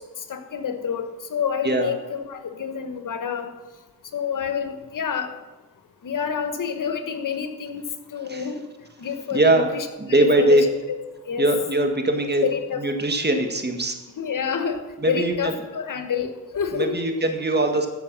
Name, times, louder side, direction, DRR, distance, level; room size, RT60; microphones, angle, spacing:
voice 1, 0.3-1.0 1.3-3.5 4.1-5.3 6.0-7.8 8.1-8.6 9.0-10.7 11.3-11.5 12.4-12.8 14.2-14.8 15.1-16.9, left 7 dB, 70° left, 7 dB, 1.2 m, -28 dB
voice 2, 9.3-9.7 10.0-10.7 11.4-12.5 12.8-14.0 15.0-15.5 16.7-17.9, right 1 dB, 30° right, 5 dB, 1.8 m, -21 dB
15.0 x 5.7 x 6.1 m, 1.1 s
cardioid pair, 55°, 33 cm